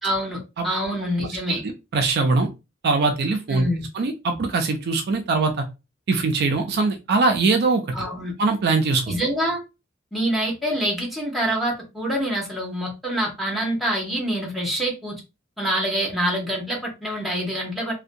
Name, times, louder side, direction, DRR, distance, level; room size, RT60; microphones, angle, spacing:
voice 1, 0.0-1.6 3.5-3.9 7.9-8.3 9.1-9.6 10.1-15.2 15.6-17.9, right 1 dB, ahead, -2 dB, 0.9 m, -26 dB
voice 2, 1.5-2.5 2.8-3.6 3.9-5.7 6.1-8.1 8.4-9.2, right 3 dB, 55° right, 5 dB, 0.4 m, -22 dB
2.6 x 2.1 x 2.5 m, 0.27 s
head